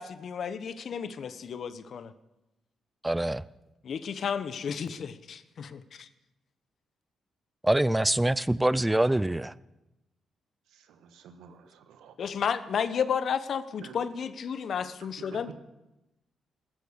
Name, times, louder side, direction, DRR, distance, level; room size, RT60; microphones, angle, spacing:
voice 1, 0.0-2.1 3.8-6.1 12.2-15.5, left 7 dB, 60° left, 1.0 m, -32 dB
voice 2, 3.0-3.4 7.6-9.5, right 1 dB, 10° right, 0.5 m, -24 dB
voice 3, 10.7-12.4 13.8-14.0 15.2-15.5, right 7 dB, 85° right, 1.4 m, -50 dB
15.0 x 14.0 x 6.4 m
supercardioid pair, 65°, 0 cm